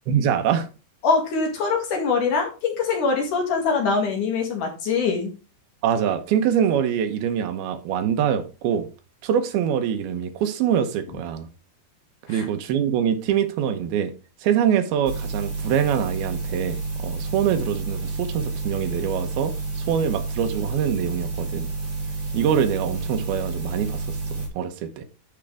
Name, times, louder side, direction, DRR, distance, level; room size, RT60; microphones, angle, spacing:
voice 1, 0.1-0.7 5.8-8.9 9.2-11.5 12.3-14.1 14.4-21.7 22.3-25.0, right 8 dB, 80° right, 2.9 m, -24 dB
voice 2, 1.0-5.3 12.3-12.5, left 4 dB, 60° left, 3.4 m, -23 dB
sound 1, 15.0-24.5, right 4 dB, 15° right, 2.1 m, -30 dB
12.0 x 5.2 x 3.4 m
omnidirectional pair, 4.4 m